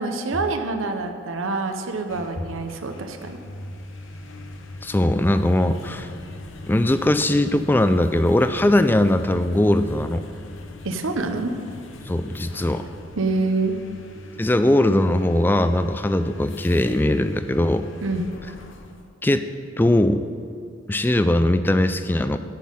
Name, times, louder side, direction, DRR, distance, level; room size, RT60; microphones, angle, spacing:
voice 1, 0.0-3.4 10.8-11.5 13.2-13.7 18.0-18.3, right 3 dB, 85° right, 6 dB, 0.8 m, -26 dB
sound 1, 1.9-19.1, left 2 dB, 75° left, 0.9 m, -41 dB
voice 2, 4.8-6.1 6.7-10.2 12.1-12.9 14.4-17.9 19.2-19.4 19.8-20.3 20.9-22.4, left 1 dB, 10° left, 10 dB, 0.3 m, -20 dB
10.0 x 5.5 x 7.6 m, 2.3 s
head